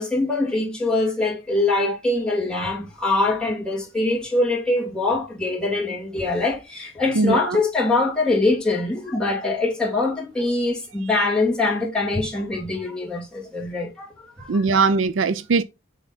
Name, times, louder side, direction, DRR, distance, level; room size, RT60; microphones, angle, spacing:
voice 1, 0.0-14.8, left 2 dB, 5° left, 2.6 m, -23 dB
voice 2, 7.1-7.6 11.1-11.2 14.5-15.6, right 4 dB, 70° right, 0.5 m, -21 dB
7.1 x 3.5 x 4.1 m
head